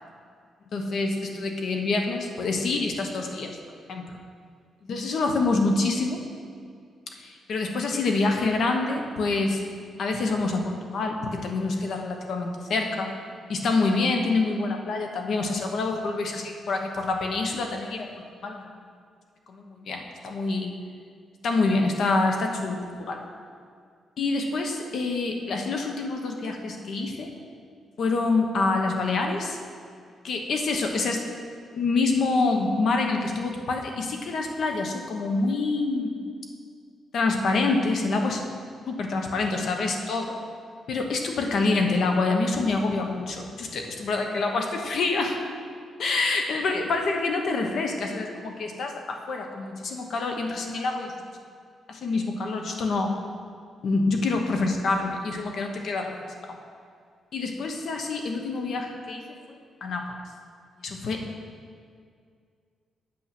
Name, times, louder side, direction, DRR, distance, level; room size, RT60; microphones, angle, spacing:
voice 1, 0.7-3.6 3.9-4.2 4.8-6.2 7.2-9.6 10.0-13.1 13.5-18.1 18.4-18.6 19.5-20.7 21.4-23.2 24.2-27.3 28.0-29.6 30.2-31.2 31.7-36.2 37.1-38.6 38.9-40.3 40.9-45.4 46.0-51.2 51.9-53.1 53.8-56.2 56.4-56.6 57.3-59.2 59.8-60.2 60.8-61.3, left 3 dB, 50° left, 3 dB, 1.0 m, -26 dB
8.6 x 6.9 x 6.0 m, 2.2 s
cardioid pair, 170°, 0 cm